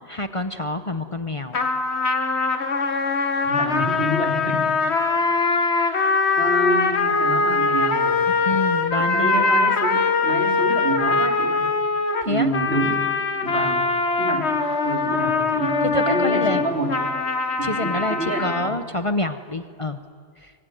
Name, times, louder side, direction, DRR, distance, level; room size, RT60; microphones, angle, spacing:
voice 1, 0.1-1.6 8.3-9.4 12.3-12.5 15.9-16.6 17.6-20.0 20.4-20.5, left 2 dB, 30° left, 8 dB, 0.9 m, -26 dB
sound 1, 1.5-18.7, left 4 dB, 75° left, 1.7 m, -22 dB
voice 2, 3.4-4.6 5.7-8.4 9.0-11.7 12.2-13.0 13.4-13.9 14.2-14.5 14.8-16.9 17.6-18.8, right 1 dB, 60° right, 2 dB, 3.4 m, -28 dB
24.5 x 24.5 x 9.4 m, 2.1 s
omnidirectional pair, 1.1 m